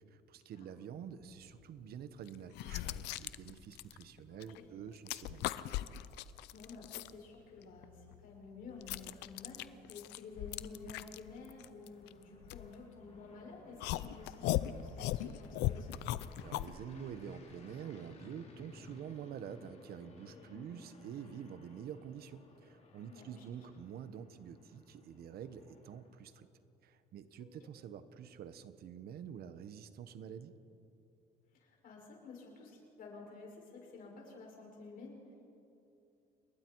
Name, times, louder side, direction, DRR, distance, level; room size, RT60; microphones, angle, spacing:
voice 1, 0.1-5.5 16.4-26.5 26.8-30.6, right 8 dB, 65° right, 11 dB, 1.2 m, -47 dB
sound 1, 1.5-1.6 2.3-4.6 4.9-7.1 7.6-13.2 13.8-16.7, left 14 dB, 85° left, 0.6 m, -39 dB
voice 2, 4.3-4.6 6.5-15.9 20.2-20.7 23.1-23.4 27.6-27.7 31.5-35.5, left 4 dB, 55° left, -1 dB, 7.0 m, -52 dB
sound 2, 9.6-26.4, left 3 dB, 40° left, 3.5 m, -59 dB
28.5 x 21.5 x 4.7 m, 2.8 s
cardioid pair, 110°, 17 cm